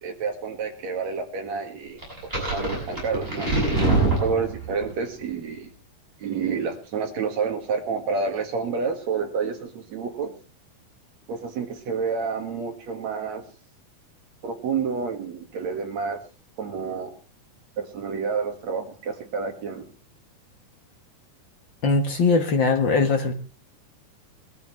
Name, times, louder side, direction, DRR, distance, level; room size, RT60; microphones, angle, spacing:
voice 1, 0.0-3.5 4.2-5.7 6.2-10.3 11.3-13.4 14.4-16.2 16.6-17.2 17.8-19.9, right 5 dB, 60° right, 5 dB, 2.9 m, -29 dB
sound 1, 2.0-4.9, right 2 dB, 15° right, 7.4 m, -24 dB
voice 2, 21.8-23.4, left 4 dB, 60° left, 6 dB, 1.3 m, -21 dB
22.0 x 13.5 x 3.1 m, 0.33 s
omnidirectional pair, 3.7 m